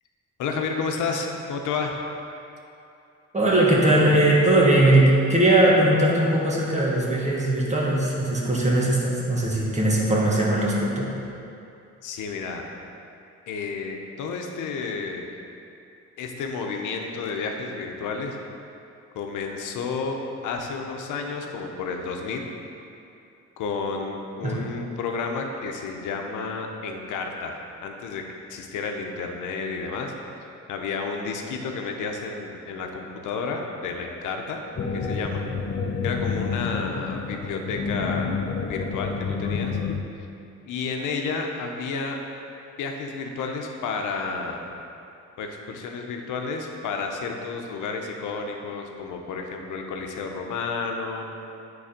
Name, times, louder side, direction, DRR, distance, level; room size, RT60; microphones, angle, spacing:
voice 1, 0.4-2.0 12.0-12.7 13.5-15.4 16.2-18.4 19.1-22.5 23.6-28.2 28.5-30.1 30.7-34.6 34.9-35.4 36.0-38.4 38.7-39.8 40.7-42.2 42.8-44.7 45.4-51.3, left 4 dB, 85° left, 3 dB, 0.9 m, -31 dB
voice 2, 3.3-11.1 24.4-24.7, right 1 dB, 25° right, -5 dB, 1.7 m, -20 dB
sound 1, 34.8-40.0, left 5 dB, 40° left, 0.7 m, -29 dB
8.5 x 4.0 x 5.2 m, 2.7 s
cardioid pair, 90°, 30 cm